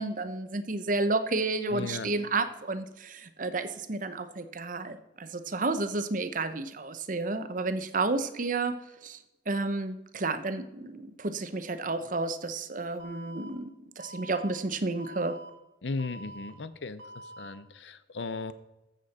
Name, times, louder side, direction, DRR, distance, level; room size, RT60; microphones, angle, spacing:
voice 1, 0.0-8.7 9.0-9.2 9.5-13.7 14.0-15.4, right 3 dB, 50° right, 10 dB, 0.9 m, -31 dB
voice 2, 1.7-2.1 15.8-18.5, left 3 dB, 90° left, 14 dB, 0.8 m, -36 dB
Alarm, 13.0-13.5 14.0-14.5 15.0-15.5 16.0-16.5 17.0-17.5, right 1 dB, 85° right, 2.0 m, -46 dB
14.0 x 7.7 x 4.3 m, 0.96 s
head